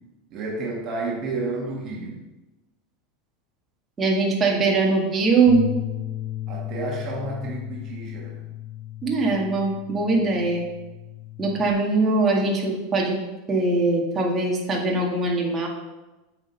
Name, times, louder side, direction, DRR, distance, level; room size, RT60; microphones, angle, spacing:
voice 1, 0.3-2.2 6.5-8.4, right 3 dB, 50° right, -1 dB, 1.8 m, -31 dB
voice 2, 4.0-5.6 9.0-10.6 11.4-13.2 13.5-15.7, right 3 dB, 25° right, -1 dB, 2.0 m, -21 dB
Bass guitar, 5.5-11.7, left 13 dB, 75° left, 1.5 m, -35 dB
8.1 x 5.0 x 5.5 m, 1.1 s
hypercardioid pair, 100°, 0 cm